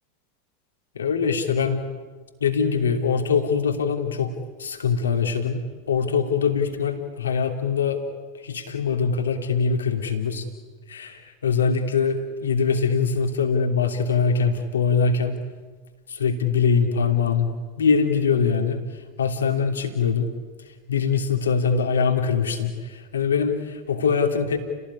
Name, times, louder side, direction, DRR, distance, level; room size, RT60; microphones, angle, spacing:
voice 1, 0.9-1.8 2.4-4.3 4.6-5.6 5.9-8.0 8.4-10.4 10.9-15.4 16.1-17.5 17.8-18.8 19.2-20.3 20.9-24.6, left 5 dB, 80° left, 5 dB, 2.9 m, -23 dB
30.0 x 18.0 x 9.9 m, 1.4 s
hypercardioid pair, 85°, 0 cm